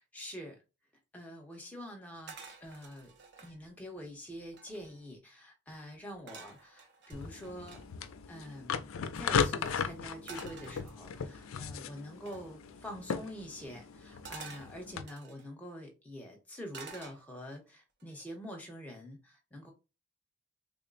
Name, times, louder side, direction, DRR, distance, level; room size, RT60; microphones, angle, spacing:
voice 1, 0.1-0.6 1.1-3.1 3.4-7.8 8.3-8.8 9.1-19.7, equal, 5° left, 0.8 m, -46 dB
sound 1, 2.3-3.6 4.1-4.2 4.4-5.1 6.3-7.8 10.3-11.3 12.3-12.5 14.2-15.5 16.7-17.6 18.0-18.3, right 5 dB, 50° right, 0.6 m, -50 dB
sound 2, 7.1-15.0, left 6 dB, 70° left, 0.4 m, -36 dB
3.6 x 2.1 x 3.9 m
head